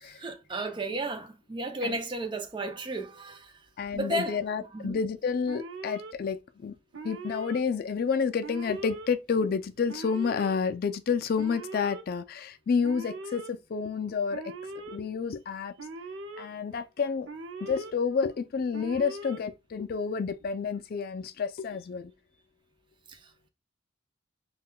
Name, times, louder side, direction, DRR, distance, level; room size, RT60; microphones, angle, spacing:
voice 1, 0.0-3.6 3.9-4.4 4.7-5.0 23.1-23.5, right 2 dB, 25° right, 0.5 m, -34 dB
voice 2, 3.8-6.7 7.0-14.4 14.8-15.7 16.4-17.3 17.6-22.1, left 5 dB, 50° left, 0.3 m, -30 dB
Alarm, 5.5-6.1 6.9-7.6 8.4-9.1 9.9-10.5 11.4-12.0 12.8-13.5 14.3-15.0 15.8-16.4 17.3-17.9 18.7-19.4, right 2 dB, 70° right, 0.5 m, -40 dB
5.4 x 2.2 x 2.2 m
head